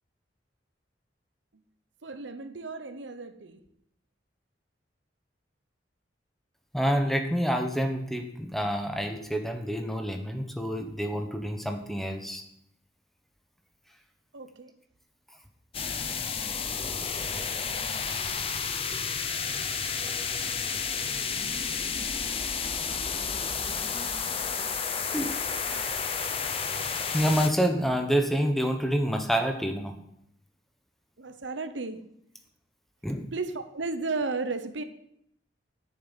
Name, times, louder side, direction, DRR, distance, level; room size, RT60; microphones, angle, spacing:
voice 1, 2.0-3.6 14.3-14.7 31.2-32.0 33.3-34.8, right 3 dB, 90° right, 10 dB, 1.0 m, -34 dB
voice 2, 6.7-12.4 23.7-24.0 25.1-25.3 25.7-25.9 27.1-29.9 33.0-33.2, equal, ahead, 4 dB, 1.1 m, -28 dB
sound 1, 15.7-27.5, left 6 dB, 30° left, 0.8 m, -31 dB
9.2 x 7.1 x 7.4 m, 0.74 s
head